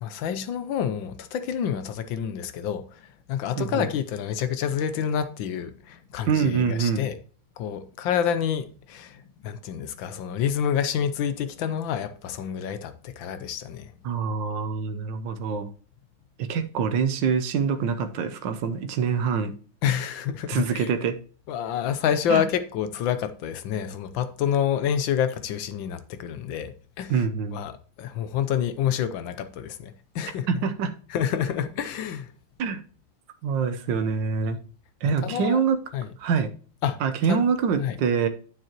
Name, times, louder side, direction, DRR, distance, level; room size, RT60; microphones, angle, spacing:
voice 1, 0.0-7.2 7.6-13.9 19.8-20.9 21.5-30.6 31.1-32.3 35.0-35.6 35.9-36.1 36.8-37.0 37.3-37.4 37.8-38.0, left 8 dB, 70° left, 1.3 m, -28 dB
voice 2, 3.6-3.9 6.3-7.0 14.0-15.7 16.4-19.5 20.5-21.2 22.3-22.4 27.1-27.6 30.5-30.9 32.6-32.8 33.4-34.6 35.0-35.8 36.2-36.5 37.0-38.3, right 6 dB, 65° right, 1.4 m, -25 dB
9.2 x 7.6 x 2.9 m
omnidirectional pair, 2.4 m